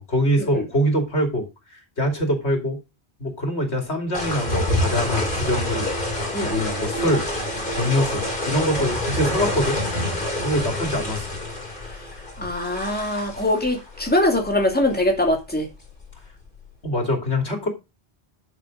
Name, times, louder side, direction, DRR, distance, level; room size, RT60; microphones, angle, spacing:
voice 1, 0.0-2.8 3.2-5.9 6.4-7.3 7.8-9.8 10.4-11.3 12.4-12.5 16.8-17.7, equal, 80° left, 3.0 m, -24 dB
sound 1, 4.1-16.7, left 1 dB, 50° left, 3.6 m, -28 dB
voice 2, 12.4-15.7, left 1 dB, 10° left, 2.6 m, -22 dB
11.5 x 6.7 x 5.1 m
omnidirectional pair, 1.1 m